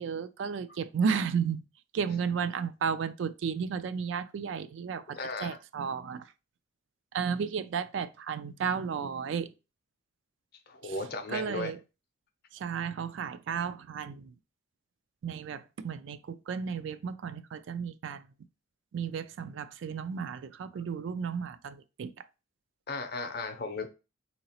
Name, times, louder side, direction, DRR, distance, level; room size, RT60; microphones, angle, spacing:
voice 1, 0.0-1.6 1.9-6.3 7.1-9.5 10.8-10.9 11.3-11.8 12.5-14.3 15.2-18.3 18.9-22.1, right 6 dB, 65° right, 0.3 m, -33 dB
voice 2, 5.1-5.6 10.7-11.7 22.9-23.9, left 3 dB, 50° left, 0.6 m, -36 dB
3.8 x 2.9 x 2.8 m
head